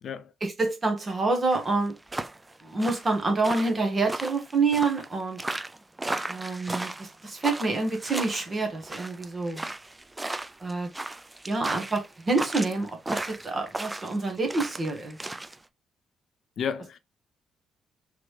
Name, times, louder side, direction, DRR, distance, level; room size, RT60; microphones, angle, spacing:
voice 1, 0.4-1.9 2.6-5.4 6.3-9.6 10.6-10.9 11.5-15.2, right 3 dB, 35° right, 1.4 m, -27 dB
Wild FX Work Boots in Mud, 1.5-15.6, right 2 dB, 15° right, 0.3 m, -35 dB
voice 2, 16.6-17.0, left 7 dB, 60° left, 0.5 m, -32 dB
3.7 x 3.2 x 3.3 m
cardioid pair, 90°, 0 cm